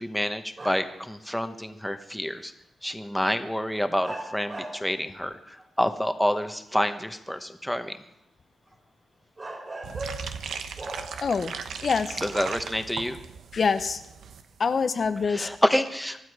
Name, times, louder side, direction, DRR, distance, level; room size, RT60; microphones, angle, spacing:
voice 1, 0.0-2.5 2.8-8.0 12.2-13.2 15.2-16.2, equal, 5° left, 8 dB, 1.2 m, -28 dB
sound 1, 0.6-1.1 2.9-3.0 4.0-4.9 5.6-6.2 8.7-8.8 9.4-10.4 10.8-11.0, right 1 dB, 35° right, 4.4 m, -38 dB
sound 2, 9.8-14.4 14.7-14.8 15.0-15.3 15.5-15.6, right 6 dB, 85° right, 1.0 m, -38 dB
voice 2, 11.2-11.5 11.8-12.2 13.5-14.0 14.6-15.5, left 5 dB, 55° left, 10 dB, 0.8 m, -25 dB
24.0 x 12.0 x 4.9 m, 0.90 s
cardioid pair, 80°, 0 cm